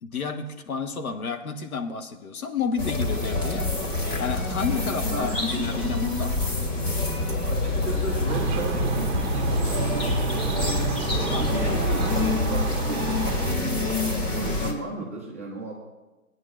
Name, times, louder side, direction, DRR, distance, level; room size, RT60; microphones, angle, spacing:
voice 1, 0.0-3.7 4.2-6.3 11.3-11.8, left 5 dB, 75° left, 6 dB, 1.3 m, -31 dB
sound 1, 2.8-14.7, left 2 dB, 30° left, 2.6 m, -26 dB
voice 2, 5.1-6.0 7.3-10.9 11.2-14.0 14.3-15.7, right 3 dB, 10° right, -6 dB, 0.4 m, -35 dB
sound 2, 5.3-12.1, equal, 10° left, 1.1 m, -37 dB
sound 3, 8.3-13.5, right 6 dB, 35° right, 0.8 m, -30 dB
18.0 x 9.4 x 2.5 m, 1.2 s
hypercardioid pair, 140°, 43 cm